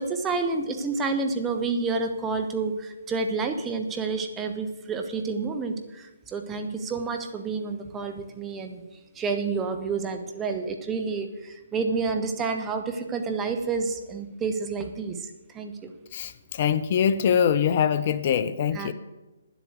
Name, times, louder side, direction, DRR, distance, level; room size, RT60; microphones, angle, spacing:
voice 1, 0.0-8.8 9.1-15.9 18.7-18.9, right 4 dB, 15° right, 6 dB, 1.2 m, -29 dB
voice 2, 16.1-18.9, left 8 dB, 45° left, 13 dB, 0.7 m, -23 dB
10.0 x 8.1 x 8.0 m, 1.1 s
figure-of-eight pair, 135°, 0 cm